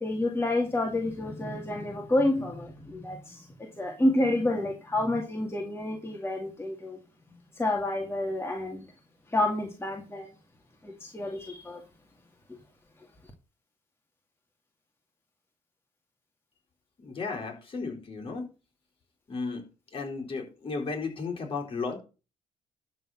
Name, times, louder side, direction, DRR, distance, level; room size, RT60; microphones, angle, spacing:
voice 1, 0.0-3.5 3.8-7.0 7.6-8.9 9.3-10.3 10.8-11.8, left 1 dB, 15° left, 1 dB, 2.3 m, -29 dB
voice 2, 17.0-18.5 19.3-19.6 19.9-22.0, left 4 dB, 40° left, 1 dB, 4.2 m, -34 dB
12.0 x 4.2 x 7.8 m, 0.33 s
cardioid pair, 95°, 15 cm